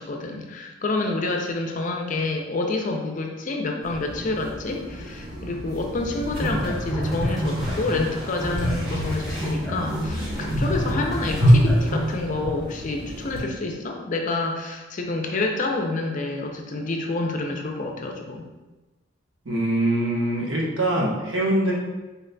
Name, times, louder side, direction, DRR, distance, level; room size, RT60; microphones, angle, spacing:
voice 1, 0.0-18.4, left 2 dB, 40° left, 2 dB, 0.4 m, -28 dB
sound 1, 3.8-13.4, equal, 50° right, 1.2 m, -26 dB
sound 2, 6.4-8.1 8.4-12.1, equal, ahead, 0.9 m, -30 dB
voice 2, 19.4-21.7, right 1 dB, 80° right, -4 dB, 1.0 m, -23 dB
4.0 x 3.8 x 2.2 m, 1.1 s
head